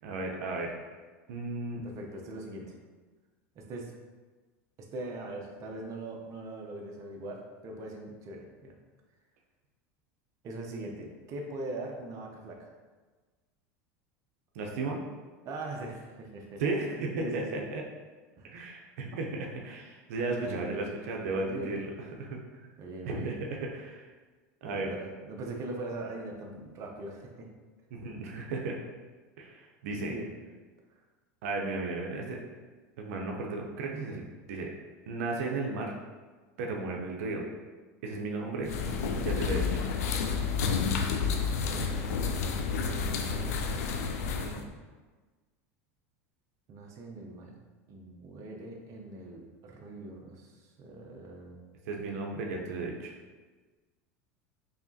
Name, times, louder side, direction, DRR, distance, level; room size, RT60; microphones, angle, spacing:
voice 1, 0.0-0.7 1.3-1.8 14.5-15.0 16.6-17.8 18.4-21.9 22.2-22.4 23.0-24.1 24.6-24.9 27.9-28.8 29.4-30.1 31.4-32.4 33.0-34.7 35.1-35.9 36.6-37.4 38.0-38.7 39.2-39.8 44.3-44.6 51.8-53.1, right 3 dB, 80° right, 0 dB, 0.6 m, -34 dB
voice 2, 1.8-2.7 3.6-3.9 4.8-8.7 10.4-12.7 15.4-16.6 17.2-17.6 18.4-18.5 20.4-21.8 22.8-23.3 24.6-27.5 30.0-30.3 41.6-43.6 46.7-47.5 47.9-51.6, right 2 dB, 40° right, 1 dB, 0.7 m, -41 dB
sound 1, 38.6-44.6, left 5 dB, 90° left, 0.4 m, -30 dB
4.7 x 2.8 x 2.8 m, 1.3 s
supercardioid pair, 120°, 8 cm